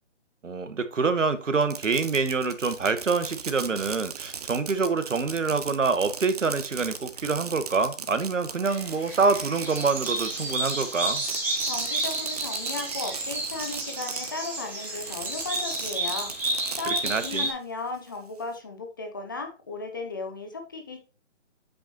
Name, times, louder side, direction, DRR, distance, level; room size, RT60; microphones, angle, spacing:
voice 1, 0.4-11.2 16.9-17.5, right 4 dB, 80° right, 1.2 m, -26 dB
Fireworks, 1.5-14.5 14.8-17.3, right 6 dB, 30° right, 0.6 m, -38 dB
sound 1, 8.6-17.5, right 2 dB, 5° right, 1.5 m, -31 dB
voice 2, 11.6-16.3 16.8-21.0, left 3 dB, 15° left, 0.6 m, -35 dB
8.1 x 6.4 x 2.9 m
figure-of-eight pair, 150°, 37 cm